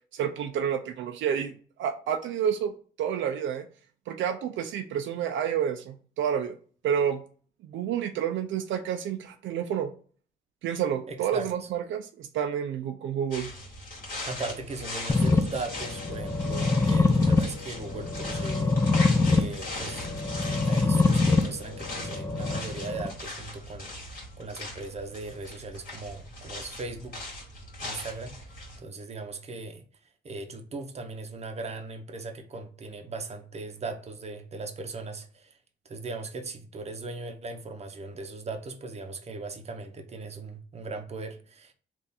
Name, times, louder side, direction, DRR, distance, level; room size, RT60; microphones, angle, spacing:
voice 1, 0.1-2.7 3.0-3.7 4.1-6.5 6.8-7.2 7.7-9.9 10.6-13.5, right 8 dB, 75° right, 0.5 m, -29 dB
voice 2, 11.1-11.7 14.2-27.3 27.8-28.3 28.8-29.8 30.2-35.6 35.8-41.7, right 3 dB, 35° right, 0.7 m, -38 dB
sound 1, 13.3-28.8, left 2 dB, 45° left, 2.0 m, -40 dB
sound 2, 15.1-23.1, left 3 dB, 15° left, 0.4 m, -25 dB
3.4 x 2.5 x 4.0 m
cardioid pair, 90°, 20 cm